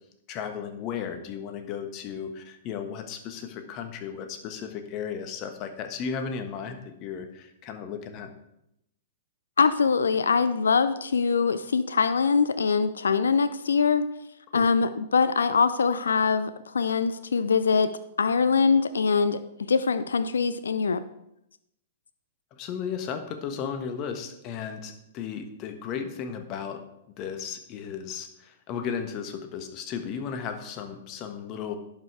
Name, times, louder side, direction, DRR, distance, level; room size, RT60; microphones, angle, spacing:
voice 1, 0.3-8.3 14.5-14.7 22.6-26.8 27.2-31.8, left 7 dB, 40° left, 7 dB, 1.3 m, -35 dB
voice 2, 9.6-14.0 14.5-17.9 18.2-21.0, left 5 dB, 80° left, 12 dB, 0.4 m, -23 dB
11.0 x 5.5 x 4.8 m, 0.82 s
hypercardioid pair, 110°, 0 cm